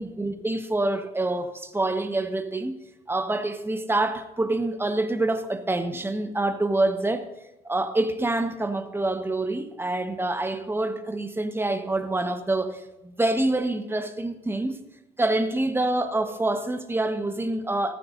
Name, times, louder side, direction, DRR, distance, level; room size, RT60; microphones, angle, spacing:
voice 1, 0.0-2.8 3.1-7.3 7.6-14.8 15.2-17.9, right 2 dB, 10° right, 1.3 m, -26 dB
16.0 x 14.0 x 2.6 m
hypercardioid pair, 60°, 21 cm